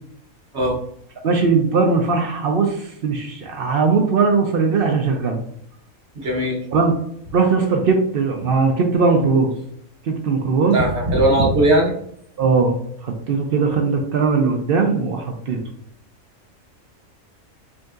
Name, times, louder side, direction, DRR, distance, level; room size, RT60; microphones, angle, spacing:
voice 1, 1.2-5.4 6.7-6.9 7.3-9.5 10.0-10.8 12.4-15.6, right 4 dB, 70° right, 3 dB, 0.5 m, -19 dB
voice 2, 6.1-6.6 10.7-11.9, right 1 dB, 55° right, -2 dB, 1.1 m, -18 dB
5.1 x 2.7 x 2.4 m, 0.68 s
omnidirectional pair, 1.5 m